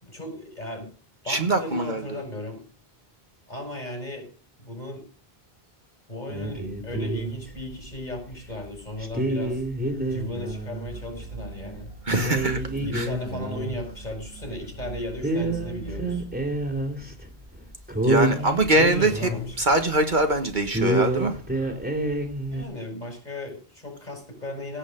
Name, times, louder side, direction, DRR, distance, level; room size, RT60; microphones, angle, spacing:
voice 1, 0.0-0.9 1.2-2.6 3.5-4.3 4.6-5.0 6.1-9.6 10.1-11.9 12.8-16.2 18.3-19.6 22.5-24.8, left 1 dB, 45° left, 5.4 m, -36 dB
voice 2, 1.3-2.0 12.1-12.6 12.9-13.1 18.0-19.1 19.6-21.4, right 2 dB, 50° right, 1.6 m, -22 dB
sound 1, 6.3-7.9 8.3-8.4 9.0-10.9 11.1-11.3 11.7-11.8 12.1-14.9 15.2-17.3 17.5-17.6 17.9-20.3 20.7-22.6, right 1 dB, 10° right, 2.6 m, -28 dB
sound 2, 10.9-16.2, right 3 dB, 80° right, 2.0 m, -41 dB
17.0 x 8.3 x 5.1 m
omnidirectional pair, 1.0 m